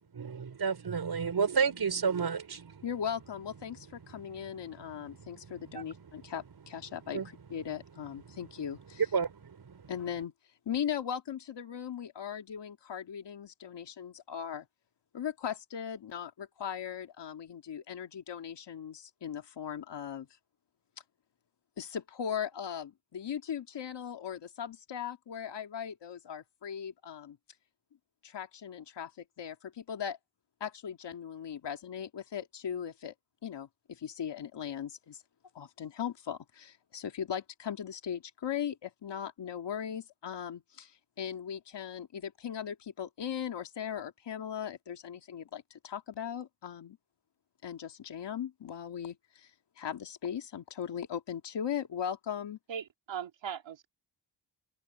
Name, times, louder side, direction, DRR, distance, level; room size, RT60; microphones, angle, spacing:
voice 1, 0.1-2.8 4.3-4.6 5.0-5.5 5.7-5.8 7.1-7.3 8.3-8.4 9.0-9.8, right 6 dB, 60° right, 5.0 m, -32 dB
voice 2, 2.8-7.2 7.5-9.0 9.9-10.3 10.7-14.7 15.1-20.3 21.8-27.4 28.2-30.2 30.6-33.1 33.4-35.2 35.5-47.0 47.6-49.5 49.8-52.6, left 8 dB, 70° left, 2.2 m, -38 dB
voice 3, 52.7-53.9, right 8 dB, 80° right, 2.3 m, -39 dB
cardioid pair, 75°, 44 cm